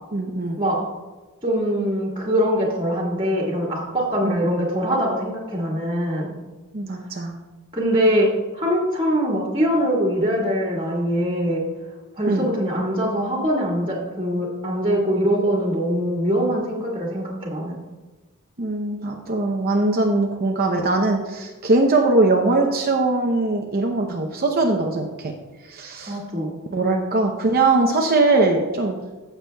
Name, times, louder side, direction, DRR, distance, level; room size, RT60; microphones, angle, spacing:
voice 1, 0.1-0.6 4.2-4.4 6.7-7.3 12.3-12.5 18.6-25.3 25.6-26.2 26.7-29.0, right 2 dB, 45° right, 1 dB, 0.7 m, -21 dB
voice 2, 1.4-6.4 7.7-8.3 8.5-11.6 12.2-17.8 26.1-26.5, equal, 25° right, -5 dB, 1.8 m, -22 dB
15.0 x 6.9 x 2.3 m, 1.2 s
head